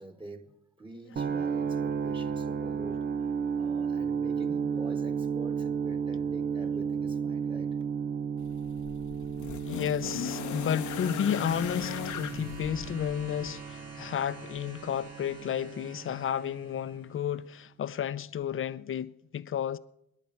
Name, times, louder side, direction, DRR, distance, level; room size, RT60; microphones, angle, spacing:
voice 1, 0.0-3.1 3.6-7.8, right 1 dB, 15° right, 1.6 m, -47 dB
sound 1, 1.2-17.1, right 6 dB, 35° right, 0.6 m, -33 dB
sound 2, 8.4-13.6 14.7-14.8, left 11 dB, 75° left, 0.9 m, -38 dB
voice 2, 9.6-19.8, left 9 dB, 45° left, 0.6 m, -32 dB
sound 3, 9.6-17.4 18.4-18.5, right 3 dB, 55° right, 3.0 m, -50 dB
26.5 x 11.0 x 4.5 m
cardioid pair, 90°, 30 cm